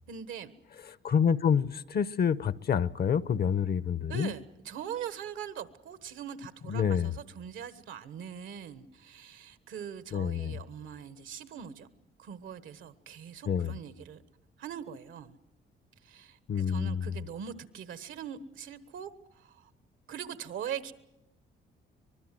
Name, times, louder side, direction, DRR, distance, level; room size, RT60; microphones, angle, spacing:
voice 1, 0.1-0.5 4.1-11.9 12.2-14.2 14.6-15.4 16.0-19.7 20.1-20.9, right 8 dB, 80° right, 1.4 m, -42 dB
voice 2, 1.0-4.3 6.7-7.1 10.1-10.6 13.5-13.8 16.5-17.1, left 7 dB, 55° left, 0.8 m, -27 dB
24.5 x 21.0 x 7.6 m
cardioid pair, 90°, 20 cm